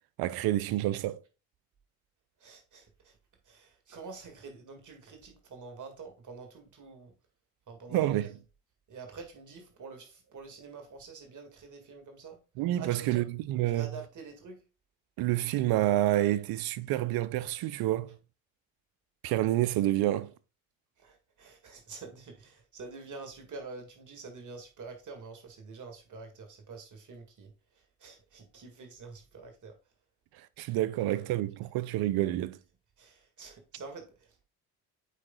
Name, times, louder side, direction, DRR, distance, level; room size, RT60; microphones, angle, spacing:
voice 1, 0.2-1.2 7.9-8.4 12.6-13.9 15.2-18.2 19.2-20.3 30.3-32.6, right 14 dB, 65° right, 0.6 m, -28 dB
voice 2, 2.4-3.2 3.5-7.1 7.7-8.3 8.9-12.4 12.8-13.2 13.6-14.6 21.0-29.7 33.0-34.4, right 4 dB, 50° right, 1.9 m, -47 dB
8.4 x 4.9 x 2.3 m
hypercardioid pair, 55°, 39 cm